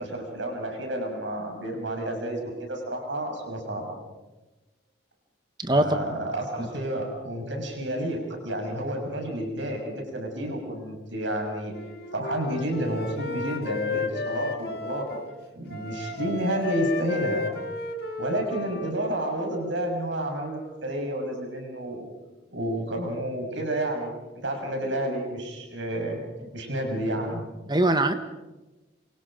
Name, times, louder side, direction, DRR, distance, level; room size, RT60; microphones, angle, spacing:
voice 1, 0.0-4.0 5.7-11.7 12.1-15.2 15.5-17.4 18.2-22.1 22.5-24.1 24.3-26.2 26.5-27.4, right 1 dB, 70° right, 3 dB, 6.2 m, -30 dB
voice 2, 5.6-6.0 6.6-6.7 27.7-28.1, right 2 dB, 20° right, 9 dB, 1.2 m, -22 dB
Wind instrument woodwind instrument, 11.7-15.3 15.7-19.3, left 3 dB, 55° left, 2.0 m, -33 dB
27.5 x 24.5 x 5.1 m, 1.1 s
head